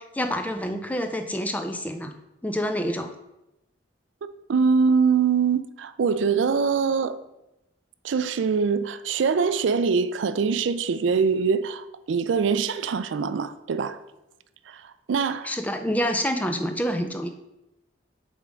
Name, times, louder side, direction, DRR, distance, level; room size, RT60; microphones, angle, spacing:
voice 1, 0.0-2.1 2.4-3.1 15.4-17.3, equal, 10° left, 0.5 m, -27 dB
voice 2, 4.2-7.2 8.0-14.0 14.7-15.6, right 5 dB, 85° right, 0.4 m, -23 dB
7.4 x 3.6 x 5.0 m
head